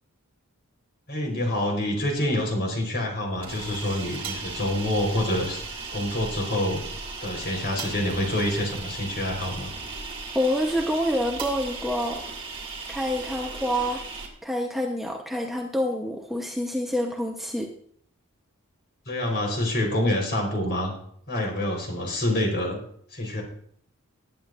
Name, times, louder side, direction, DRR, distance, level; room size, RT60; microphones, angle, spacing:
voice 1, 1.1-5.6 5.9-6.8 7.2-9.7 19.1-20.9 21.3-22.8 23.1-23.4, left 1 dB, 50° left, 1 dB, 4.2 m, -27 dB
sound 1, 3.2-14.3, right 4 dB, 25° right, 2.6 m, -37 dB
voice 2, 10.3-12.2 12.9-14.0 14.4-17.7, equal, ahead, 1 dB, 0.9 m, -27 dB
19.5 x 10.0 x 2.5 m, 0.63 s
head